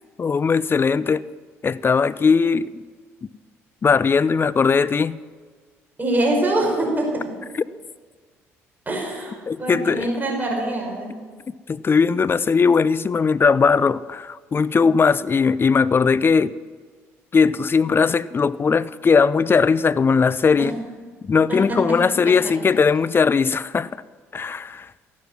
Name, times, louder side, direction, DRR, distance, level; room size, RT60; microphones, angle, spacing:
voice 1, 0.2-1.2 1.6-2.8 3.8-5.2 9.5-10.1 11.7-16.5 17.3-20.8 21.2-23.9 24.3-24.9, left 5 dB, 30° left, 0.5 m, -19 dB
voice 2, 6.0-7.3 8.9-11.1 21.5-21.8 22.3-22.4, right 1 dB, 25° right, 5.3 m, -24 dB
14.0 x 12.0 x 6.0 m
hypercardioid pair, 55°, 7 cm